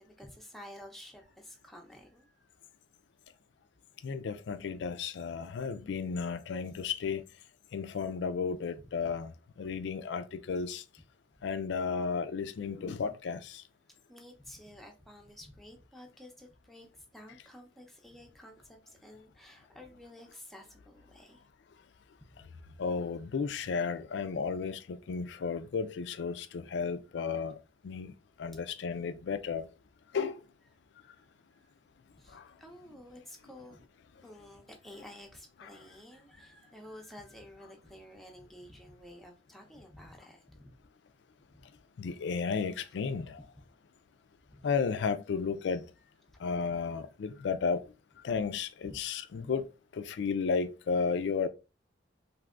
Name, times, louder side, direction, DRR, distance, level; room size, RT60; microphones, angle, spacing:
voice 1, 0.0-2.5 8.8-9.1 9.6-9.8 13.9-21.4 22.3-22.8 31.1-31.3 31.5-31.6 32.2-33.8 34.2-40.7 41.5-41.6 44.5-44.7 46.3-46.8 48.8-49.0, left 1 dB, ahead, 0.6 m, -52 dB
voice 2, 4.0-7.2 7.7-10.8 11.4-13.6 22.8-27.6 27.8-29.7 30.1-30.4 32.3-32.6 41.6-41.7 42.0-43.4 44.6-45.9 46.4-47.9 48.2-49.7 49.9-51.5, left 5 dB, 70° left, 0.4 m, -33 dB
3.3 x 2.6 x 2.4 m
head